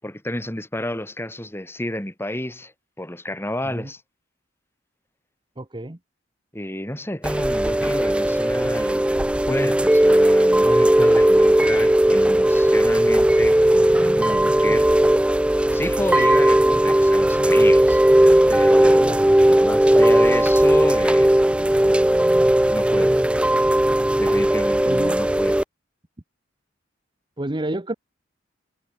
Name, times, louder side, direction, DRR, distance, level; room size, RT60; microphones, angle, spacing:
voice 1, 0.0-4.0 6.5-14.9 15.2-15.3 15.7-18.0 18.5-19.1 19.4-21.3 21.8-22.2 22.7-23.2 24.2-25.6, left 1 dB, 10° left, 4.8 m, -30 dB
voice 2, 5.6-6.0 19.0-19.2 24.9-25.2 27.4-27.9, right 1 dB, 25° right, 1.1 m, -29 dB
Chime / Rain, 7.2-25.6, right 1 dB, 5° right, 0.4 m, -17 dB
head